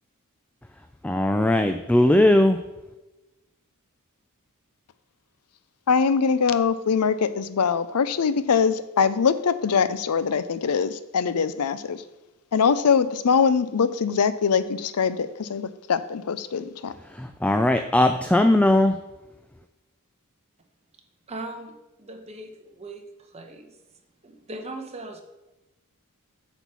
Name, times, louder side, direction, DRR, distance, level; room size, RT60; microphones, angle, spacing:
voice 1, 1.0-2.6 17.2-18.9, left 1 dB, 5° left, 7 dB, 0.3 m, -19 dB
voice 2, 5.9-12.0 12.5-16.9, left 6 dB, 85° left, 14 dB, 0.5 m, -23 dB
voice 3, 21.3-21.7 22.0-23.0 23.3-23.7 24.2-25.2, right 2 dB, 30° right, 4 dB, 1.1 m, -38 dB
8.1 x 4.5 x 7.0 m, 1.0 s
head